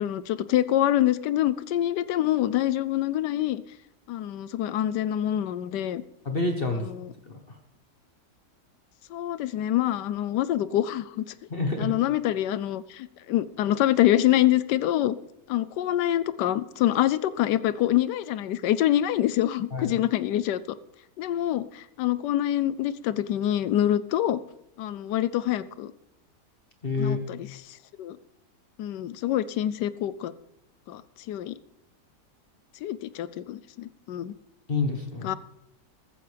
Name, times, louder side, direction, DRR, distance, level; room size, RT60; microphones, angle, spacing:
voice 1, 0.0-3.6 4.1-6.0 7.0-7.1 9.1-11.2 11.8-15.2 15.5-20.6 21.2-24.4 24.8-25.9 27.0-27.4 28.0-28.2 28.8-30.3 30.9-31.0 31.3-31.5 32.8-34.3 35.2-35.4, left 12 dB, 80° left, 16 dB, 1.2 m, -25 dB
voice 2, 6.2-6.9 7.3-7.4 11.5-11.9 19.7-19.9 26.8-27.2 34.7-35.3, left 3 dB, 35° left, 4 dB, 1.2 m, -27 dB
15.0 x 14.0 x 3.4 m, 0.85 s
omnidirectional pair, 1.9 m